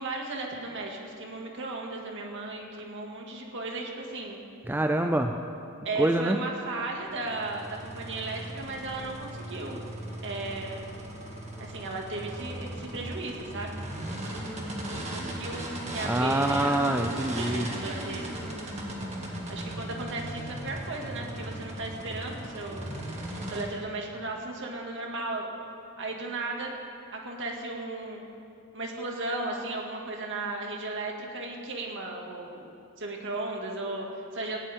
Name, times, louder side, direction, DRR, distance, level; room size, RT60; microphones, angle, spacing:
voice 1, 0.0-4.4 5.8-9.8 10.2-10.9 11.6-13.9 14.9-16.8 17.4-18.4 19.5-22.9 23.5-25.5 26.0-26.7 27.1-28.2 28.7-32.7 33.0-34.6, right 2 dB, 60° right, 0 dB, 2.2 m, -35 dB
voice 2, 4.7-5.3 6.0-6.4 16.0-17.7, right 1 dB, 10° right, 5 dB, 0.5 m, -25 dB
sound 1, 7.0-23.6, right 1 dB, 30° right, 2.2 m, -37 dB
17.5 x 17.0 x 3.7 m, 2.6 s
head